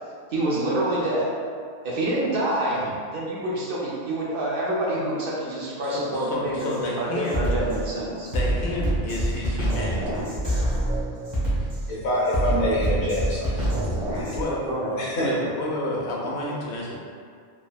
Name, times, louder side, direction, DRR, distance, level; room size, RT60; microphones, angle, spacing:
voice 1, 0.3-1.3 1.8-8.3 14.7-14.9, right 1 dB, 60° right, -6 dB, 0.7 m, -27 dB
voice 2, 5.8-7.5 8.3-10.2 14.3-16.9, left 1 dB, 85° left, -4 dB, 0.9 m, -30 dB
Drum kit, 6.6-6.8 7.3-14.4, right 1 dB, 25° right, 0.8 m, -26 dB
voice 3, 11.9-13.8 14.1-14.4 15.0-15.3, equal, 55° left, -6 dB, 0.8 m, -26 dB
3.4 x 2.0 x 2.2 m, 2.1 s
omnidirectional pair, 1.1 m